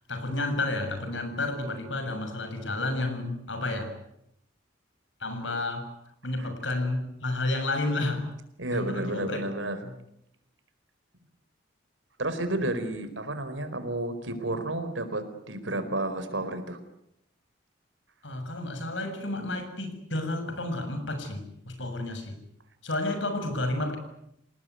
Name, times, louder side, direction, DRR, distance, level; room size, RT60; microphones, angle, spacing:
voice 1, 0.1-4.0 5.2-5.9 6.2-8.3 8.7-9.4 9.8-9.9 18.2-22.4 22.8-24.0, left 2 dB, 80° left, 8 dB, 7.0 m, -31 dB
voice 2, 8.6-9.8 12.2-16.8, right 1 dB, 90° right, 9 dB, 4.7 m, -31 dB
28.5 x 19.0 x 9.6 m, 0.79 s
head